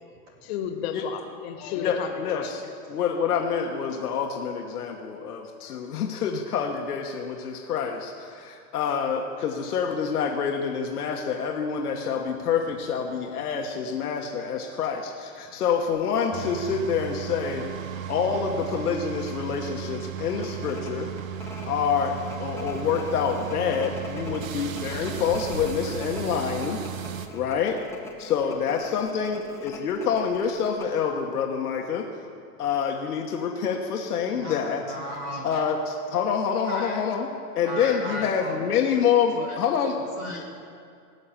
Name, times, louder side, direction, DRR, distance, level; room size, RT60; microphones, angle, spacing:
voice 1, 0.4-2.6, left 8 dB, 45° left, 6 dB, 1.6 m, -33 dB
voice 2, 1.8-2.6 2.9-21.1 21.7-26.8 27.3-27.8 28.2-32.1 32.6-34.8 35.4-37.3 37.5-39.9, left 7 dB, 90° left, 1 dB, 1.4 m, -27 dB
sound 1, 15.9-16.1 16.7-16.8 17.1-18.0 18.4-18.5 18.8-19.1 19.5-19.6 20.2-31.0, left 2 dB, 5° left, 0.7 m, -42 dB
sound 2, 16.3-27.3, right 9 dB, 60° right, 1.2 m, -35 dB
voice 3, 34.3-35.7 36.6-37.0 37.6-38.6 38.9-39.0 39.4-39.6 40.0-40.6, equal, 10° right, 0 dB, 0.3 m, -36 dB
17.5 x 6.6 x 8.9 m, 2.3 s
hypercardioid pair, 150°, 45 cm